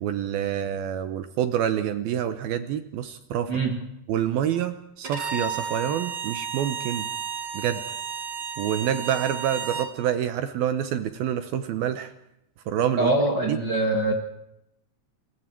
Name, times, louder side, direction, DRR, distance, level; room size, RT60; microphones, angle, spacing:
voice 1, 0.0-3.5 4.1-7.1 7.5-7.8 8.6-12.1 12.7-13.1 13.5-13.6, right 10 dB, 80° right, 10 dB, 2.2 m, -27 dB
voice 2, 3.5-3.8 13.0-14.1, right 2 dB, 60° right, 2 dB, 1.1 m, -23 dB
Bowed string instrument, 5.0-9.9, right 6 dB, 30° right, 2.5 m, -32 dB
29.5 x 22.5 x 4.5 m, 0.83 s
omnidirectional pair, 5.6 m